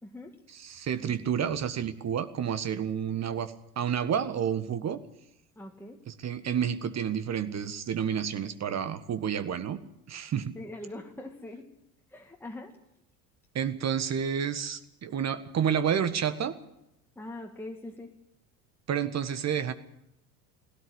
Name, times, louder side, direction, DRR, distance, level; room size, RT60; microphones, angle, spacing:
voice 1, 0.0-0.4 5.6-6.1 10.4-11.7 12.1-12.8 17.2-18.1, left 1 dB, 5° left, 1 dB, 2.2 m, -42 dB
voice 2, 0.5-5.0 6.1-9.8 10.1-10.5 13.5-16.6 18.9-19.7, right 8 dB, 35° right, 12 dB, 1.6 m, -30 dB
20.0 x 17.0 x 8.1 m, 0.83 s
figure-of-eight pair, 70°, 47 cm